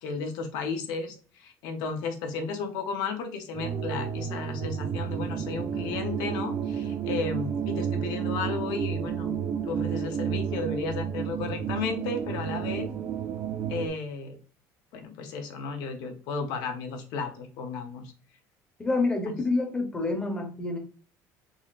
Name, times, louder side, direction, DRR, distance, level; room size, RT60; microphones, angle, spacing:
voice 1, 0.0-9.4 9.6-12.9 13.7-14.4 14.9-18.1 19.3-19.4, left 4 dB, 75° left, 5 dB, 0.8 m, -34 dB
sound 1, 3.5-13.9, right 8 dB, 40° right, 0.4 m, -31 dB
voice 2, 18.8-20.8, left 3 dB, 10° left, 3 dB, 0.9 m, -27 dB
3.8 x 3.0 x 2.4 m, 0.38 s
cardioid pair, 145°, 7 cm